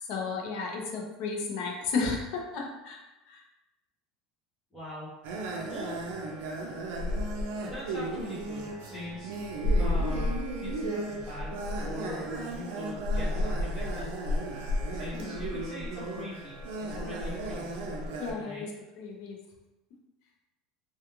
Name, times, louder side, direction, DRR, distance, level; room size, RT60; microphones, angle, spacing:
voice 1, 0.1-3.0 3.3-3.4 15.1-15.5 18.2-18.7 19.0-19.4, left 4 dB, 50° left, 1 dB, 0.5 m, -33 dB
voice 2, 4.7-5.1 5.7-6.0 7.6-9.3 9.7-11.6 11.8-14.4 14.9-16.6 16.9-17.8 18.4-18.6, left 1 dB, 10° left, -12 dB, 0.7 m, -42 dB
sound 1, 5.2-18.3, equal, 80° right, 0.4 m, -32 dB
2.3 x 2.3 x 2.9 m, 1.0 s
cardioid pair, 175°, 0 cm